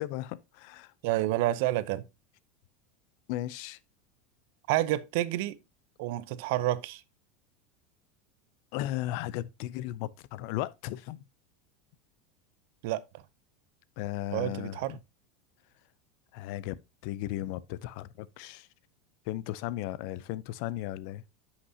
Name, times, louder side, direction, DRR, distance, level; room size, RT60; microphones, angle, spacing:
voice 1, 0.0-0.9 3.3-3.8 8.7-11.2 14.0-15.0 16.3-16.8 17.0-18.7 19.3-21.2, left 14 dB, 65° left, 0.5 m, -36 dB
voice 2, 1.0-2.0 4.7-5.6 6.0-7.0 12.8-13.0 14.3-15.0, right 15 dB, 70° right, 0.6 m, -29 dB
9.7 x 5.8 x 2.8 m
supercardioid pair, 125°, 0 cm